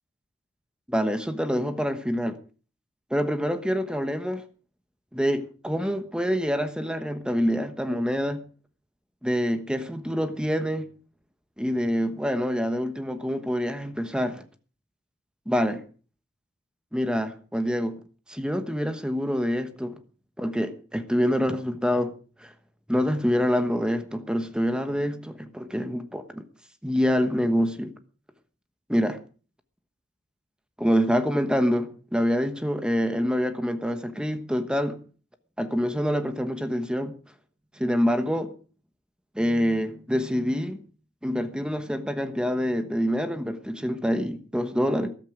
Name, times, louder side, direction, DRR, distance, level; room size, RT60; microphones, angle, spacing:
voice 1, 0.9-2.4 3.1-4.4 5.1-8.4 9.2-10.9 11.6-14.4 15.5-15.8 16.9-18.0 18.3-20.0 20.4-22.1 22.4-22.5 22.9-26.5 26.8-27.9 28.9-29.2 30.8-35.0 35.6-37.2 37.8-38.5 39.3-40.8 41.2-45.1, equal, 5° right, 1.1 m, -26 dB
14.0 x 12.5 x 5.0 m
head